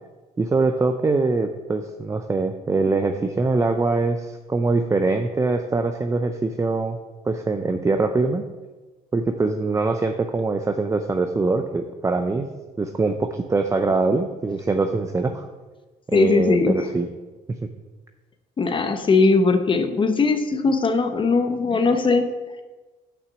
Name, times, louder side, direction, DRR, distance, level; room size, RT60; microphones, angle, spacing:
voice 1, 0.4-7.0 7.2-8.4 9.1-12.5 12.8-15.4 16.1-17.1, right 3 dB, 15° right, 6 dB, 0.5 m, -23 dB
voice 2, 16.1-16.9 18.6-22.3, left 4 dB, 30° left, 8 dB, 0.9 m, -19 dB
6.6 x 6.0 x 7.1 m, 1.2 s
cardioid pair, 110°, 17 cm